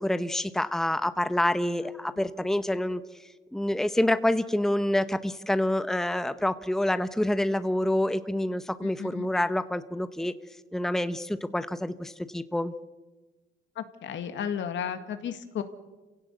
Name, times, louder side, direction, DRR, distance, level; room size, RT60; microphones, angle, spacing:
voice 1, 0.0-3.0 3.5-10.3 10.7-12.7, left 1 dB, ahead, 12 dB, 0.9 m, -27 dB
voice 2, 8.8-9.3 13.8-15.6, left 8 dB, 70° left, 8 dB, 2.0 m, -33 dB
27.5 x 16.5 x 8.2 m, 1.2 s
cardioid pair, 90°, 20 cm